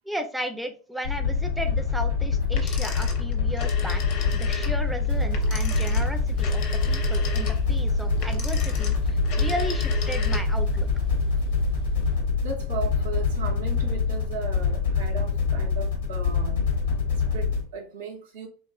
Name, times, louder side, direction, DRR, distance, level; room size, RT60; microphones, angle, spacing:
voice 1, 0.1-10.9, equal, 5° right, 0.4 m, -35 dB
sound 1, 1.0-17.6, left 6 dB, 85° left, 0.9 m, -25 dB
sound 2, 2.4-12.2, right 8 dB, 50° right, 1.0 m, -32 dB
sound 3, 2.5-10.7, left 4 dB, 60° left, 0.6 m, -37 dB
voice 2, 12.4-16.8 17.1-18.5, right 5 dB, 80° right, 0.6 m, -36 dB
2.6 x 2.4 x 2.2 m
hypercardioid pair, 95°, 0 cm